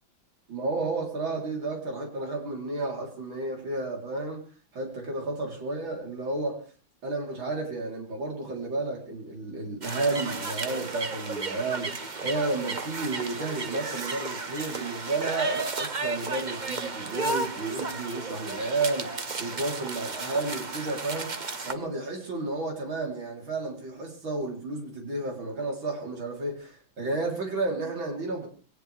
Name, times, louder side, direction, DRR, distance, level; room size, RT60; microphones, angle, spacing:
voice 1, 0.5-4.4 4.7-6.7 7.0-21.3 21.7-28.5, right 3 dB, 85° right, 4.4 m, -32 dB
sound 1, 9.8-21.7, right 3 dB, 30° right, 0.9 m, -33 dB
21.5 x 18.5 x 3.4 m
omnidirectional pair, 2.1 m